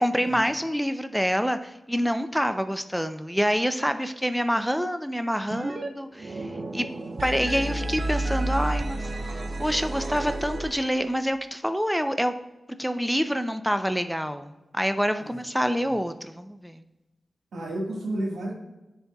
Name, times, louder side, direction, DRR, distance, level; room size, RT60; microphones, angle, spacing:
voice 1, 0.0-6.9 7.2-9.1 9.6-12.3 12.8-16.8, equal, ahead, 9 dB, 0.5 m, -27 dB
sound 1, 5.5-5.9 6.1-11.1, right 2 dB, 55° right, 0.7 m, -31 dB
voice 2, 7.5-7.9 15.2-15.3 17.5-18.5, right 1 dB, 90° right, -2 dB, 1.5 m, -32 dB
10.0 x 4.1 x 2.3 m, 1.0 s
cardioid pair, 40°, 0 cm